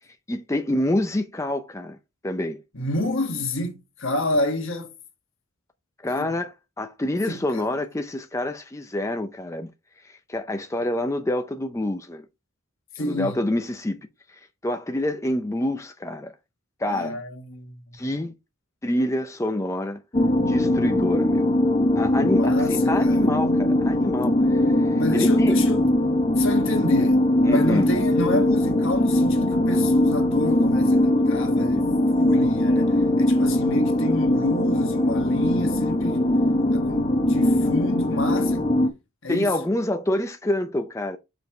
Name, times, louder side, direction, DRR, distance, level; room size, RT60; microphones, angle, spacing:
voice 1, 0.3-2.0 2.2-2.6 6.0-9.7 10.0-12.3 13.0-14.0 14.3-16.3 16.8-17.2 17.9-18.3 18.8-20.0 20.5-21.5 22.0-25.6 27.5-27.9 39.3-41.2, left 1 dB, 15° left, 0.5 m, -27 dB
voice 2, 2.7-4.9 6.1-6.3 7.3-7.7 13.0-13.4 16.9-17.8 22.2-23.3 25.0-25.9 26.4-36.3 36.7-38.7 39.2-39.6, left 1 dB, 60° left, 1.3 m, -29 dB
sound 1, 20.1-38.9, left 1 dB, 30° left, 1.0 m, -21 dB
5.2 x 4.6 x 4.7 m
head